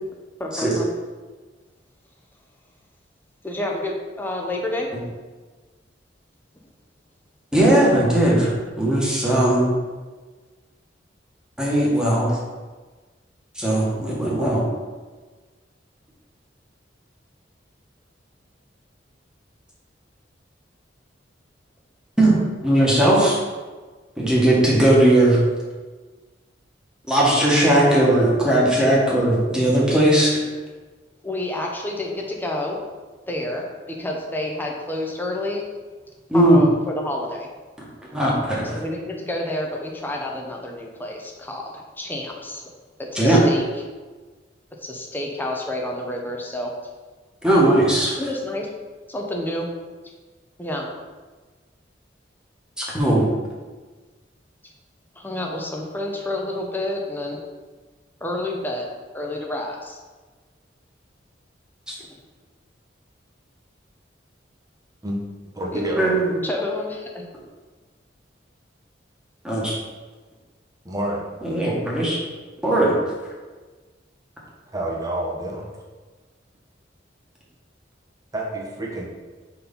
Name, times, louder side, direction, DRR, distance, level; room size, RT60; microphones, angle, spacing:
voice 1, 0.4-0.9 3.4-4.9 31.2-32.8 33.3-35.6 36.3-37.5 38.7-42.7 43.0-43.6 44.8-46.7 48.2-48.7 49.1-49.7 50.0-50.1 50.6-50.9 54.6-54.7 55.2-57.4 58.2-58.9 59.1-60.0 65.7-65.8 66.4-67.2, left 1 dB, 10° left, 0 dB, 0.8 m, -29 dB
voice 2, 7.5-9.7 11.6-12.4 13.5-14.6 22.2-23.4 24.2-25.4 27.1-30.4 36.3-36.6 38.1-38.7 43.1-43.4 47.4-48.2 52.8-53.3 66.0-66.4 69.4-69.7 71.4-72.2 72.6-72.9, right 1 dB, 5° right, -5 dB, 1.4 m, -18 dB
voice 3, 65.5-66.0 70.8-71.2 74.7-75.7 78.3-79.1, right 1 dB, 20° right, -1 dB, 1.0 m, -28 dB
4.2 x 4.2 x 5.4 m, 1.3 s
head